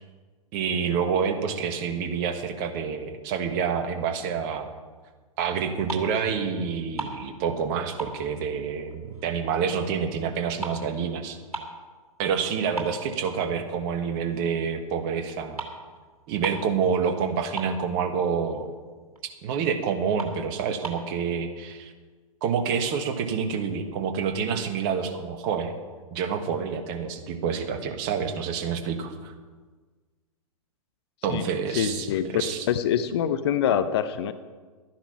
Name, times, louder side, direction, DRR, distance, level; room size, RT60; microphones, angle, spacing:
voice 1, 0.5-4.7 5.4-11.4 12.2-15.6 16.3-18.7 19.4-21.9 22.4-25.7 26.1-29.3 31.2-32.6, right 6 dB, 35° right, 7 dB, 1.4 m, -28 dB
sound 1, 5.9-6.3 6.6-7.7 8.0-9.5 9.8-11.9 12.3-12.4 12.8-13.8 14.3-14.5 15.3-15.4 15.6-15.8 16.1-16.2 16.4-16.8 17.1-17.2 17.4-18.2 18.6-18.7 19.2-19.3 19.7-19.8 20.1-21.1, right 2 dB, 80° right, 2.7 m, -37 dB
voice 2, 31.7-32.4 32.7-34.3, left 9 dB, 45° left, 11 dB, 0.8 m, -25 dB
13.0 x 10.5 x 5.8 m, 1.4 s
figure-of-eight pair, 110°, 19 cm